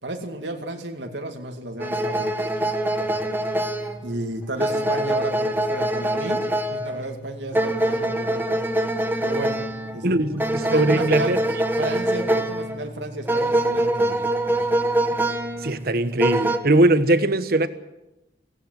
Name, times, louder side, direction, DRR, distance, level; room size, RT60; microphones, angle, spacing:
voice 1, 0.0-2.5 3.0-3.2 4.0-8.7 9.2-9.6 9.9-10.3 10.6-11.4 11.8-14.2 14.5-14.8, right 2 dB, 90° right, 2.5 m, -33 dB
sound 1, 1.8-16.6, right 1 dB, 10° right, 1.5 m, -24 dB
voice 2, 10.0-11.4 15.6-17.7, right 2 dB, 55° right, 1.2 m, -20 dB
19.0 x 16.0 x 9.5 m
head